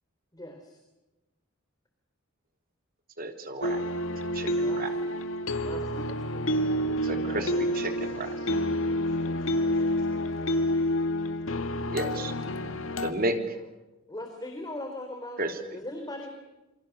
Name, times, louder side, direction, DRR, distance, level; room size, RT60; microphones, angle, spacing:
voice 1, 0.3-0.8 4.5-4.8 5.6-6.9 14.1-15.4 15.7-16.3, left 1 dB, 20° left, 4 dB, 3.6 m, -40 dB
voice 2, 3.2-3.8 4.3-4.9 7.0-8.4 11.9-12.3 13.0-13.6 15.4-15.6, right 2 dB, 45° right, 5 dB, 3.6 m, -32 dB
sound 1, 3.6-13.1, left 1 dB, 70° left, 2.1 m, -28 dB
voice 3, 7.2-8.5 9.0-10.9, left 1 dB, 45° left, 1 dB, 5.6 m, -53 dB
28.5 x 24.5 x 6.7 m, 1.0 s
head